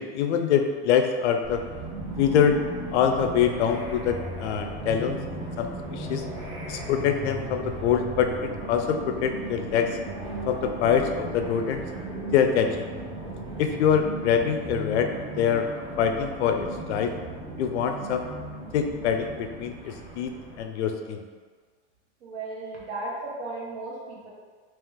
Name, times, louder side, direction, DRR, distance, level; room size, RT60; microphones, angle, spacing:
voice 1, 0.0-1.6 2.2-2.6 2.9-6.2 6.7-9.9 10.5-11.8 12.3-12.9 13.6-15.1 15.4-15.6 16.0-17.1 17.6-18.3 18.7-20.3 20.6-21.2, left 8 dB, 75° left, 5 dB, 0.5 m, -24 dB
sound 1, 1.4-20.6, right 2 dB, 50° right, 1.5 m, -36 dB
voice 2, 22.2-24.3, right 2 dB, 75° right, -5 dB, 1.4 m, -35 dB
3.3 x 2.9 x 3.5 m, 1.5 s
supercardioid pair, 165°, 35 cm